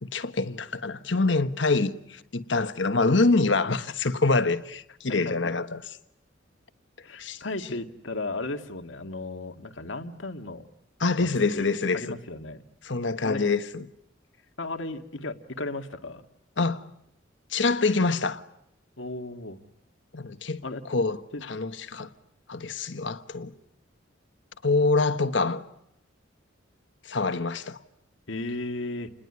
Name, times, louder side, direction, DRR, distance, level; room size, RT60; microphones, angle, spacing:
voice 1, 0.0-5.8 7.2-7.4 11.0-12.1 12.8-13.8 16.6-16.9 17.5-18.4 20.1-20.6 20.9-22.1 22.5-23.5 24.6-25.6 27.0-27.8, left 3 dB, 70° left, 1.3 m, -25 dB
voice 2, 7.0-10.7 11.2-11.3 11.5-12.6 13.2-13.5 14.6-16.2 19.0-19.6 20.6-20.8 21.3-21.5 28.3-29.1, left 2 dB, 90° left, 2.0 m, -35 dB
29.0 x 21.0 x 9.8 m
head